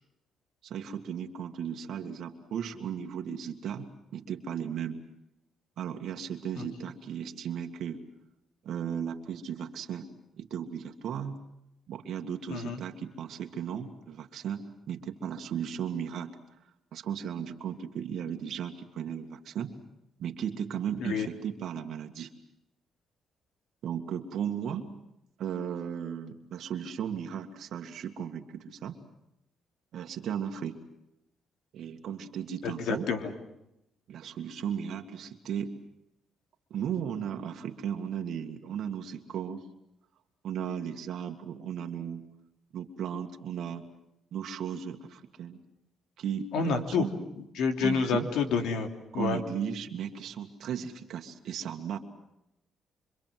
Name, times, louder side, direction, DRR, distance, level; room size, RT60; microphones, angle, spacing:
voice 1, 0.6-5.0 5.8-8.0 8.6-10.1 10.4-11.4 11.9-16.3 16.9-19.7 20.2-22.3 23.8-24.9 25.4-29.0 29.9-30.8 31.7-33.1 34.1-35.7 36.7-39.6 40.4-42.2 42.7-43.9 44.3-45.6 46.2-47.1 47.8-48.3 49.1-52.0, right 8 dB, 70° right, 4 dB, 2.0 m, -36 dB
voice 2, 32.6-33.2 46.5-47.0 47.6-48.9 49.1-49.4, left 5 dB, 80° left, 6 dB, 3.2 m, -28 dB
26.0 x 25.5 x 7.7 m, 0.84 s
cardioid pair, 90°, 0 cm